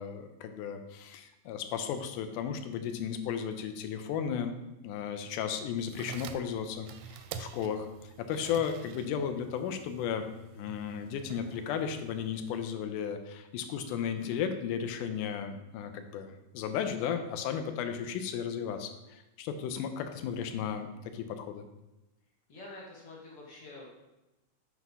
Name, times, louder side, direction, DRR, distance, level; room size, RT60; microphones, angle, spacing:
voice 1, 0.0-4.5 4.8-7.9 8.2-10.3 10.5-21.6, left 8 dB, 85° left, 7 dB, 2.1 m, -34 dB
sound 1, 5.8-12.6, right 7 dB, 85° right, 2.1 m, -48 dB
voice 2, 22.5-23.9, left 2 dB, 55° left, -3 dB, 1.7 m, -47 dB
8.0 x 3.0 x 5.4 m, 0.99 s
omnidirectional pair, 3.6 m